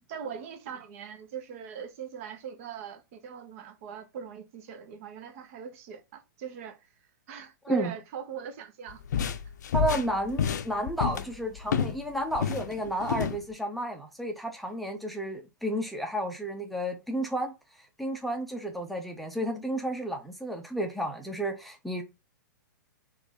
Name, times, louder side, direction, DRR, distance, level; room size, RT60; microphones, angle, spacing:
voice 1, 0.1-6.9 7.3-9.0, right 8 dB, 45° right, 1.0 m, -41 dB
sound 1, 8.9-12.0 12.3-13.4, left 7 dB, 60° left, 0.6 m, -29 dB
voice 2, 9.7-22.0, right 1 dB, ahead, 0.7 m, -32 dB
4.4 x 2.6 x 4.1 m
figure-of-eight pair, 110°, 11 cm